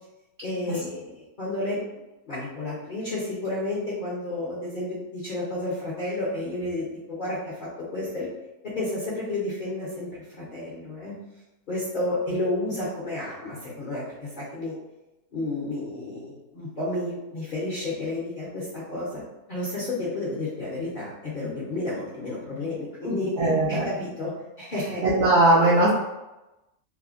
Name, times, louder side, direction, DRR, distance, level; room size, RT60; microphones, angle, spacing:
voice 1, 0.4-1.8 2.3-8.3 8.6-11.2 11.7-14.8 15.3-19.2 19.5-23.4 23.7-24.3 24.6-25.0, left 2 dB, 50° left, -8 dB, 0.6 m, -31 dB
voice 2, 23.4-23.9 25.0-25.9, right 2 dB, 65° right, -7 dB, 0.6 m, -19 dB
3.2 x 2.1 x 2.4 m, 0.99 s
omnidirectional pair, 1.6 m